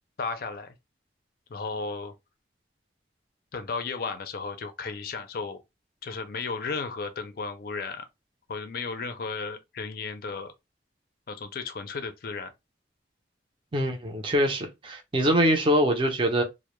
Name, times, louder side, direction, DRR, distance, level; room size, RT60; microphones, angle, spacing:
voice 1, 0.2-0.7 1.5-2.1 3.5-5.6 6.0-8.0 8.5-10.5 11.3-12.5, left 4 dB, 55° left, 0.4 m, -34 dB
voice 2, 13.7-16.4, equal, 30° right, 0.5 m, -24 dB
2.2 x 2.0 x 2.9 m
head